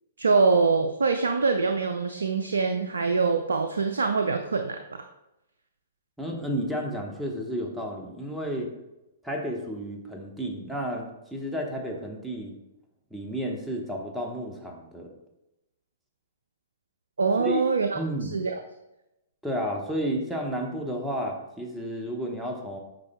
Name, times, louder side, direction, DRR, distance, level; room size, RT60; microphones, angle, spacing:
voice 1, 0.2-5.0 17.2-18.6, right 4 dB, 75° right, 6 dB, 0.4 m, -24 dB
voice 2, 6.2-8.7 9.2-12.5 13.1-15.1 17.4-17.6 17.9-18.3 19.4-22.8, equal, 5° right, 0 dB, 1.1 m, -32 dB
8.6 x 5.4 x 2.2 m, 0.93 s
figure-of-eight pair, 115°, 0 cm